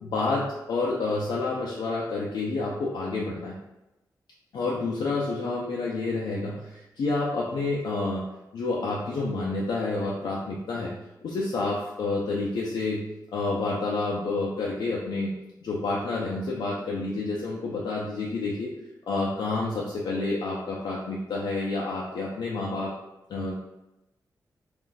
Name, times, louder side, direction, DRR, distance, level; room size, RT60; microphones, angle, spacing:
voice 1, 0.0-3.6 4.5-10.9 11.2-15.4 15.6-18.7 19.1-22.9 23.3-23.5, left 3 dB, 85° left, -4 dB, 0.5 m, -29 dB
2.5 x 2.4 x 3.9 m, 0.95 s
wide cardioid pair, 160°, 7 cm